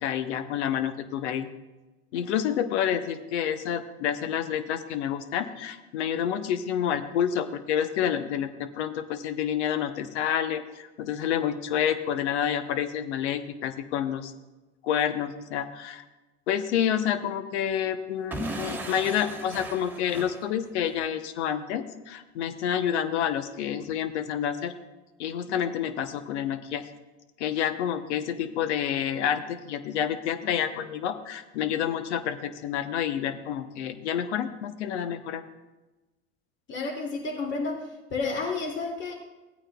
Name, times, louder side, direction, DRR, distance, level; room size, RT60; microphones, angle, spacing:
voice 1, 0.0-1.5 2.1-14.3 14.8-16.0 16.5-24.7 25.2-26.8 27.4-35.4, left 9 dB, 75° left, 10 dB, 0.9 m, -28 dB
Explosion / Shatter, 18.3-21.1, right 1 dB, 5° right, 1.6 m, -37 dB
voice 2, 36.7-37.8 38.1-39.1, left 3 dB, 35° left, 1 dB, 2.3 m, -30 dB
17.0 x 9.0 x 2.3 m, 1.1 s
hypercardioid pair, 85°, 34 cm